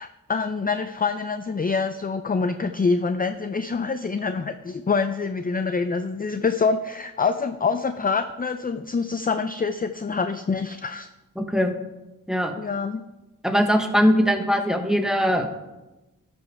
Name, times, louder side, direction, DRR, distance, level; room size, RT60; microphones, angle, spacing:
voice 1, 0.0-11.1 12.6-13.0, left 4 dB, 25° left, 9 dB, 0.4 m, -26 dB
voice 2, 11.4-11.7 12.3-12.5 13.4-15.6, equal, ahead, 5 dB, 1.1 m, -21 dB
12.5 x 5.1 x 4.7 m, 1.0 s
wide cardioid pair, 65°, 36 cm